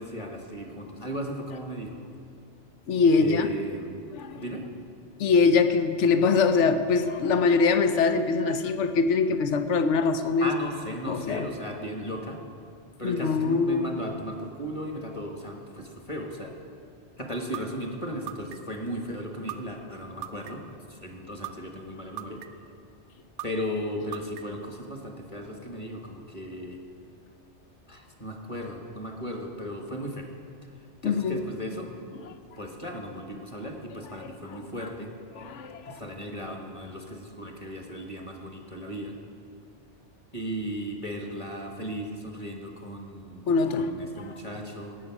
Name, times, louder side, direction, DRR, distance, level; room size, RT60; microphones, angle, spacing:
voice 1, 0.0-2.0 3.2-4.0 4.3-4.6 10.4-12.4 13.0-16.5 17.2-20.6 20.9-22.4 23.4-26.8 27.9-30.3 31.0-31.9 32.6-35.1 35.8-39.2 40.3-43.5 43.8-45.0, equal, 30° left, 2 dB, 1.5 m, -36 dB
voice 2, 2.9-3.5 4.1-4.4 5.2-10.5 11.1-11.5 13.0-14.0 31.0-31.4 34.2-34.9 35.3-36.0 43.5-44.3, left 4 dB, 85° left, 9 dB, 1.1 m, -23 dB
sound 1, 17.5-17.6 18.3-18.8 19.5-19.6 20.2-20.7 21.4-21.5 22.2-22.7 23.4-23.5 24.1-24.6, right 14 dB, 85° right, 0.9 m, -36 dB
17.0 x 7.6 x 6.1 m, 2.3 s
omnidirectional pair, 1.2 m